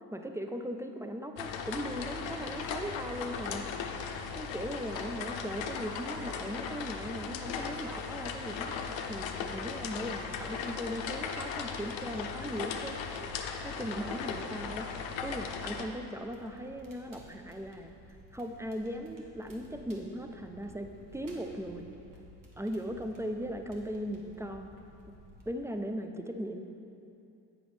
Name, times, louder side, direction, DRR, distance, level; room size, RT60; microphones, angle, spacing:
voice 1, 0.1-3.7 4.4-13.0 13.6-14.9 15.2-17.9 18.3-21.9 22.6-24.7 25.5-26.7, equal, 5° right, 5 dB, 0.4 m, -38 dB
sound 1, 1.4-15.9, left 6 dB, 65° left, 0.7 m, -37 dB
Crackle, 16.1-25.5, right 1 dB, 40° right, 1.4 m, -55 dB
7.7 x 6.1 x 3.3 m, 2.7 s
hypercardioid pair, 50°, 49 cm